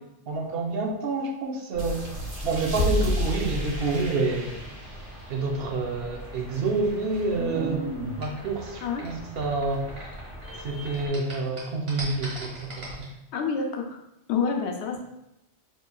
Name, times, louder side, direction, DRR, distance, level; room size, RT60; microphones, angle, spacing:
voice 1, 0.3-2.1 2.4-4.6 5.3-7.9 8.2-9.9 10.6-13.1, right 3 dB, 60° right, 2 dB, 0.7 m, -28 dB
sound 1, 1.7-11.1, equal, 20° left, 0.4 m, -41 dB
sound 2, 1.8-7.0, left 1 dB, 40° right, 1.3 m, -32 dB
sound 3, 6.2-10.6 10.9-13.0, right 1 dB, 85° right, 1.6 m, -36 dB
voice 2, 13.3-14.0 14.3-15.0, left 5 dB, 70° left, 3 dB, 0.8 m, -28 dB
5.0 x 3.0 x 2.2 m, 0.86 s
omnidirectional pair, 1.2 m